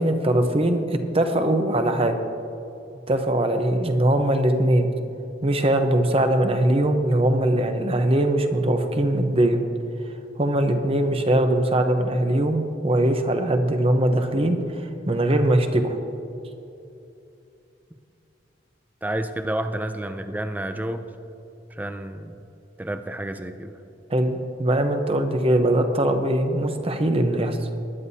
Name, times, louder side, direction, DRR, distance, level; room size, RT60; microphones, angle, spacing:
voice 1, 0.0-2.2 3.1-4.9 5.4-9.6 10.4-16.0 24.1-27.6, right 1 dB, 30° right, 6 dB, 0.9 m, -21 dB
voice 2, 19.0-21.1 21.7-22.4 22.8-23.8, right 1 dB, 10° right, 8 dB, 0.4 m, -30 dB
19.5 x 10.5 x 2.8 m, 2.8 s
head